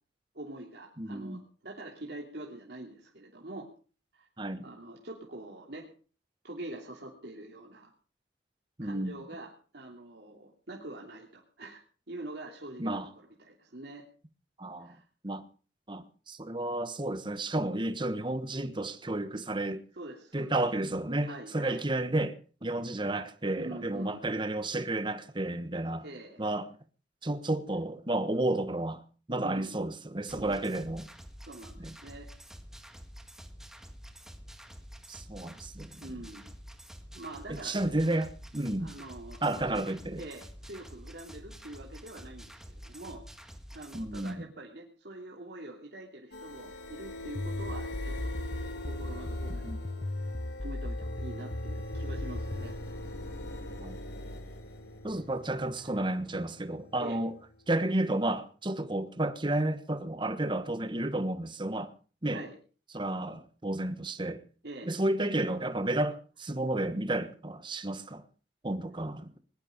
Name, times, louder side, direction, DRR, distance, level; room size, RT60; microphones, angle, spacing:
voice 1, 0.3-3.7 4.1-4.3 4.6-5.9 6.4-7.9 8.8-11.8 12.1-14.0 14.8-15.0 19.9-20.5 21.2-21.8 23.6-24.2 26.0-26.4 29.4-29.7 30.3-30.7 31.5-32.3 36.0-36.5 37.1-37.8 38.8-39.8 40.1-43.2 43.7-50.1 50.6-52.8 57.0-57.2 62.3-62.6 64.6-64.9, right 2 dB, 65° right, 2.9 m, -45 dB
voice 2, 1.0-1.4 4.4-4.7 8.8-9.2 12.8-13.1 14.6-14.9 15.2-15.4 15.9-19.8 20.3-26.1 26.4-26.7 27.2-29.0 29.3-31.1 31.8-31.9 35.1-36.0 37.5-39.0 39.4-40.2 43.9-44.5 49.5-49.8 53.8-54.0 55.0-57.3 57.7-61.9 62.2-62.4 62.9-64.4 64.8-68.2 68.6-69.3, right 1 dB, 25° right, 1.2 m, -32 dB
sound 1, 30.3-44.3, equal, 5° right, 1.8 m, -48 dB
sound 2, 46.3-57.9, left 1 dB, 70° left, 3.3 m, -42 dB
sound 3, 47.4-52.7, left 1 dB, 35° left, 0.8 m, -36 dB
20.0 x 12.0 x 5.2 m
head